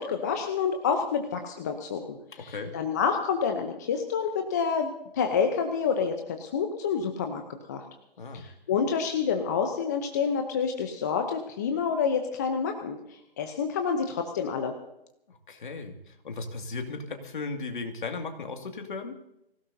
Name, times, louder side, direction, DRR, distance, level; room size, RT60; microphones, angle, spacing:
voice 1, 0.0-7.4 7.7-7.8 8.3-14.7, left 6 dB, 15° left, 5 dB, 0.8 m, -28 dB
voice 2, 15.5-19.2, left 3 dB, 50° left, 4 dB, 2.4 m, -36 dB
25.0 x 16.5 x 2.8 m, 0.79 s
figure-of-eight pair, 155°, 31 cm